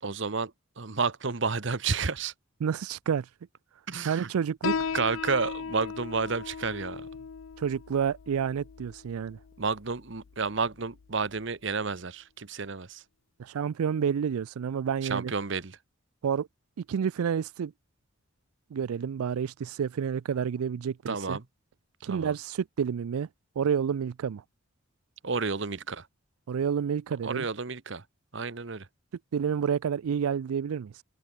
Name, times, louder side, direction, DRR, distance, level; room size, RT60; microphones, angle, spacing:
voice 1, 0.0-2.3 3.9-4.3 4.9-7.1 9.6-13.0 15.1-15.8 21.1-21.4 22.1-22.3 25.2-26.1 27.2-28.0 28.3-28.9, right 4 dB, 55° right, 0.9 m, -31 dB
voice 2, 2.6-3.3 4.0-4.9 7.6-9.4 13.4-15.3 16.2-16.5 16.9-17.7 18.7-21.4 22.0-23.3 23.6-24.4 26.5-27.5 29.3-31.0, right 7 dB, 90° right, 0.4 m, -29 dB
Piano, 4.6-11.7, left 6 dB, 65° left, 0.5 m, -37 dB
open air
head